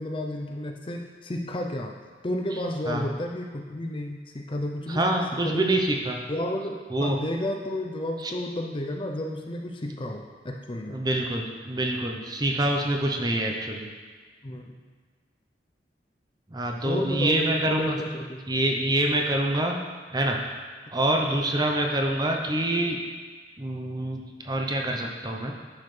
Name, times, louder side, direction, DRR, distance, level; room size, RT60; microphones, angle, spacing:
voice 1, 0.0-1.9 2.2-5.8 6.3-11.0 13.2-13.3 14.4-14.7 16.8-18.4 19.3-19.4, left 1 dB, 30° left, 2 dB, 0.5 m, -32 dB
voice 2, 4.9-6.2 6.9-7.2 8.2-8.3 10.9-13.9 16.5-18.0 18.5-19.8 20.1-20.4 20.9-23.0 23.6-25.5, right 1 dB, 25° right, 1 dB, 0.8 m, -26 dB
10.5 x 6.4 x 3.3 m, 1.6 s
head